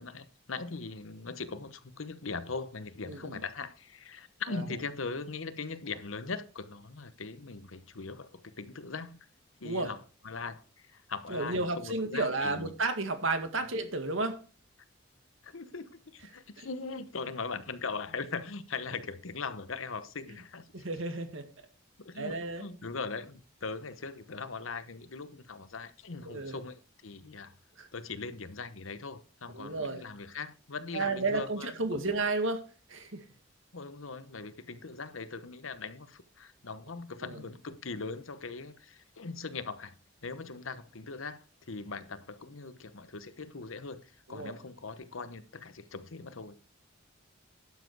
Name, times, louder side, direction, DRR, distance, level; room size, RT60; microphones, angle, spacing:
voice 1, 0.0-9.2 9.6-12.7 15.4-20.6 22.0-27.5 27.9-32.1 33.7-39.9 40.2-46.6, left 4 dB, 80° left, 1.0 m, -40 dB
voice 2, 3.1-3.4 4.5-4.7 9.6-9.9 11.3-14.4 16.6-16.7 20.7-21.4 22.2-22.6 26.3-26.6 27.8-27.9 29.5-30.0 30.9-32.6 32.9-33.2 37.2-37.4 44.3-44.5, right 3 dB, 75° right, 1.9 m, -32 dB
11.5 x 7.5 x 4.7 m
head